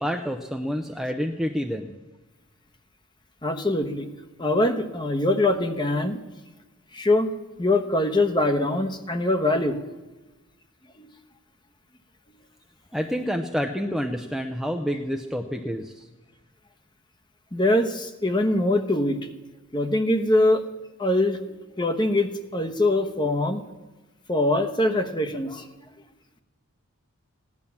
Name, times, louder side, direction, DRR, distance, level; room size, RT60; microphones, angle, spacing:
voice 1, 0.0-1.9 12.9-16.1, equal, ahead, 3 dB, 0.6 m, -28 dB
voice 2, 3.4-4.1 4.4-6.2 6.9-7.3 7.6-9.8 11.0-11.1 17.5-19.2 19.7-20.6 21.0-23.6 24.3-25.7, left 1 dB, 20° left, 6 dB, 1.0 m, -23 dB
16.5 x 11.0 x 7.1 m, 1.1 s
head